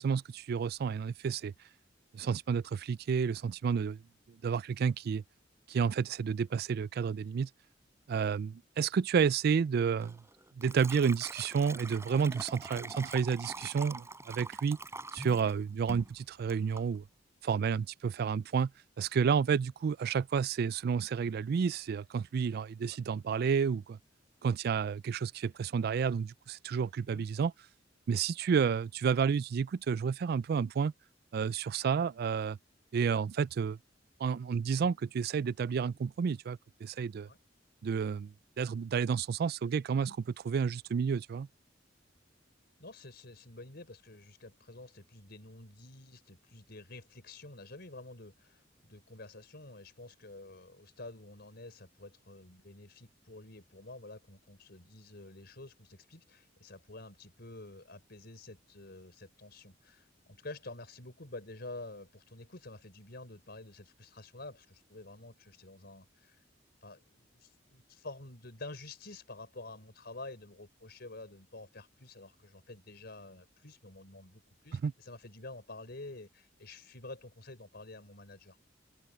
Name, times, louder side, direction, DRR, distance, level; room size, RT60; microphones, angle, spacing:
voice 1, 0.0-1.5 2.1-4.0 4.4-5.2 5.7-7.5 8.1-10.2 10.6-14.8 15.1-17.0 17.4-18.7 19.0-24.0 24.4-27.5 28.1-30.9 31.3-32.6 32.9-33.8 34.2-37.3 37.8-40.2 40.4-41.5 74.8-74.9, right 6 dB, 55° right, 0.3 m, -30 dB
Liquid, 10.0-15.6 15.9-16.1 16.5-16.9, right 2 dB, 15° right, 4.3 m, -44 dB
voice 2, 42.8-66.4 66.8-78.6, left 2 dB, 60° left, 4.5 m, -49 dB
open air
head